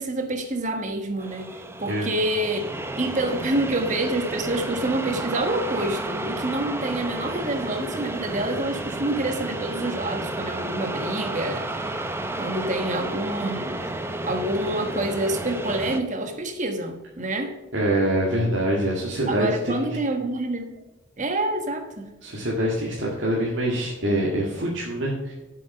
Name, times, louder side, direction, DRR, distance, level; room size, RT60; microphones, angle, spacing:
voice 1, 0.0-12.0 12.4-13.8 14.2-17.5 19.3-20.7 21.2-22.1, right 1 dB, 40° right, 6 dB, 1.4 m, -27 dB
sound 1, 1.2-16.0, right 1 dB, 10° right, 0.7 m, -31 dB
voice 2, 17.7-20.0 22.2-25.3, right 1 dB, 70° right, -4 dB, 2.0 m, -25 dB
8.0 x 7.5 x 5.5 m, 1.1 s
head